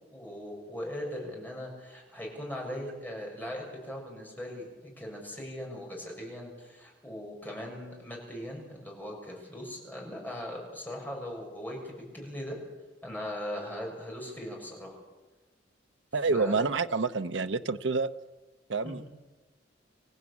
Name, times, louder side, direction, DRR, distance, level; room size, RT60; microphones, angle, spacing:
voice 1, 0.1-12.6 13.0-15.0 16.3-16.7 18.8-19.0, equal, 10° left, -1 dB, 7.2 m, -39 dB
voice 2, 16.1-18.1 18.7-19.1, right 4 dB, 75° right, 8 dB, 0.8 m, -28 dB
27.0 x 15.5 x 8.6 m, 1.2 s
head